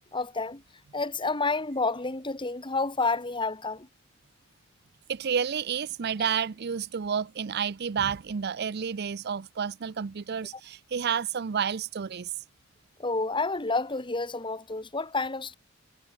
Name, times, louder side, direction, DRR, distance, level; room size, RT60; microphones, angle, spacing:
voice 1, 0.1-0.6 0.9-3.9 13.0-15.6, left 3 dB, 25° left, 2.0 m, -29 dB
voice 2, 5.1-12.3, right 7 dB, 55° right, 0.5 m, -30 dB
head